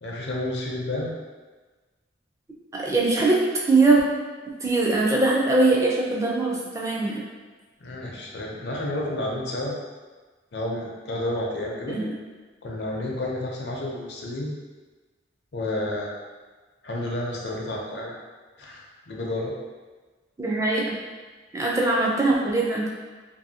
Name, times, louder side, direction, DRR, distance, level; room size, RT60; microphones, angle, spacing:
voice 1, 0.0-1.1 7.8-9.7 10.5-12.0 12.6-14.5 15.5-16.1 16.8-18.1 18.6-19.5, left 1 dB, 65° left, -2 dB, 0.6 m, -30 dB
voice 2, 2.7-3.4 3.7-4.0 4.6-7.2 11.9-12.1 20.4-21.0 21.5-22.9, right 3 dB, 15° right, -3 dB, 0.4 m, -21 dB
2.7 x 2.6 x 2.7 m, 1.3 s
head